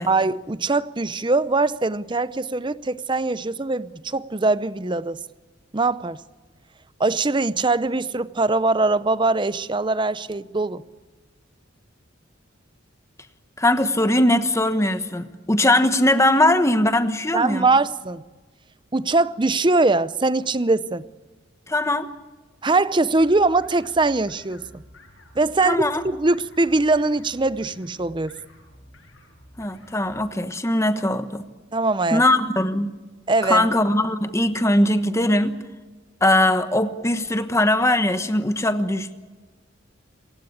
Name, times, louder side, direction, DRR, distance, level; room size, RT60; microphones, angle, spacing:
voice 1, 0.1-5.2 5.7-6.2 7.0-10.8 17.3-18.2 18.9-21.1 22.6-24.8 25.4-28.3 31.7-32.2 33.3-33.7, right 3 dB, 25° right, 0.6 m, -22 dB
voice 2, 13.6-17.7 21.7-22.1 25.6-26.0 29.6-31.4 32.1-32.9 33.4-35.5 36.2-39.1, left 1 dB, 15° left, 1.2 m, -20 dB
sound 1, 23.2-30.3, left 1 dB, 90° left, 7.7 m, -50 dB
27.0 x 16.0 x 8.6 m
head